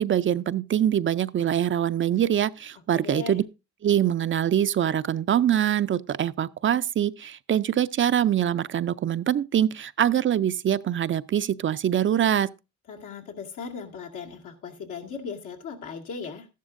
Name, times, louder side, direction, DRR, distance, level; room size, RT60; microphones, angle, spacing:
voice 1, 0.0-3.4 3.8-12.5, right 10 dB, 40° right, 0.4 m, -24 dB
voice 2, 2.9-3.4 12.9-16.5, left 5 dB, 80° left, 2.1 m, -37 dB
13.5 x 11.0 x 2.6 m
cardioid pair, 90°, 30 cm